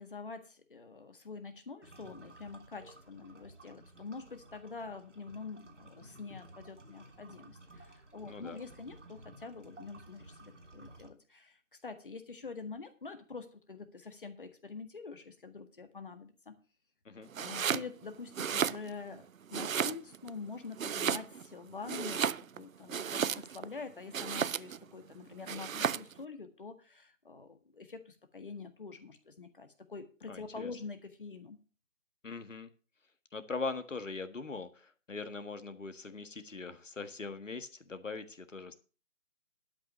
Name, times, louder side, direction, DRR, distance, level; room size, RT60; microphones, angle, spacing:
voice 1, 0.0-16.6 17.4-31.6, left 4 dB, 40° left, 8 dB, 1.7 m, -46 dB
sound 1, 1.8-11.1, right 2 dB, 65° right, 2.2 m, -55 dB
voice 2, 8.3-8.6 17.1-17.3 30.3-30.7 32.2-32.7 33.3-38.7, left 4 dB, 70° left, 10 dB, 1.7 m, -41 dB
Domestic sounds home sounds, 17.3-17.9 18.3-19.2 19.5-20.3 20.8-21.5 21.8-23.7 24.1-24.8 25.5-26.1, right 8 dB, 80° right, 0.6 m, -33 dB
12.0 x 5.6 x 7.3 m, 0.37 s
figure-of-eight pair, 165°, 40 cm